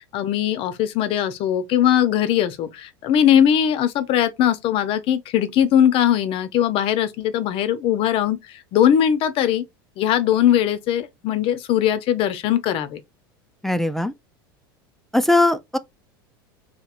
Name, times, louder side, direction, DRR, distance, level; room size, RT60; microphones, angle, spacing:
voice 1, 0.1-8.4 8.7-9.6 10.0-13.0, left 10 dB, 50° left, 0.6 m, -20 dB
voice 2, 13.6-14.1 15.1-15.8, left 2 dB, 5° left, 0.3 m, -19 dB
2.9 x 2.8 x 2.4 m
hypercardioid pair, 95°, 12 cm